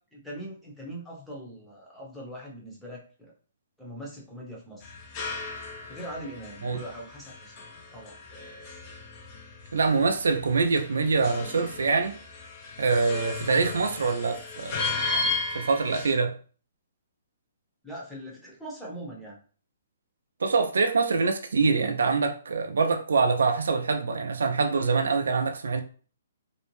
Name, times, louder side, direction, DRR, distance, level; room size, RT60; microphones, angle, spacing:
voice 1, 0.1-3.3 3.8-4.9 5.9-8.2 17.8-19.4, equal, 5° left, 0.8 m, -41 dB
sound 1, 4.8-16.1, left 3 dB, 30° left, 0.5 m, -35 dB
voice 2, 9.7-12.1 12.8-16.4 20.4-25.8, right 4 dB, 85° right, 0.4 m, -25 dB
2.6 x 2.1 x 3.1 m
hypercardioid pair, 155°, 0 cm